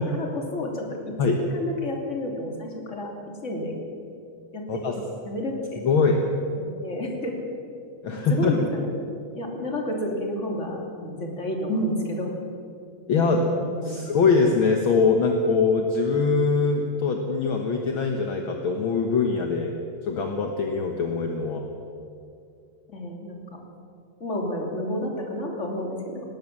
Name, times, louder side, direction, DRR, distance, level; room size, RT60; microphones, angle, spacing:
voice 1, 0.0-3.7 4.5-4.8 5.2-5.8 6.5-7.4 8.1-8.9 9.3-12.3 13.1-14.1 22.9-23.6 24.2-26.2, left 1 dB, 25° left, 1 dB, 2.9 m, -31 dB
voice 2, 5.8-6.2 8.0-8.6 13.1-13.5 13.8-19.8 20.0-21.6, left 4 dB, 55° left, 3 dB, 1.6 m, -22 dB
19.0 x 18.5 x 7.4 m, 2.5 s
omnidirectional pair, 3.7 m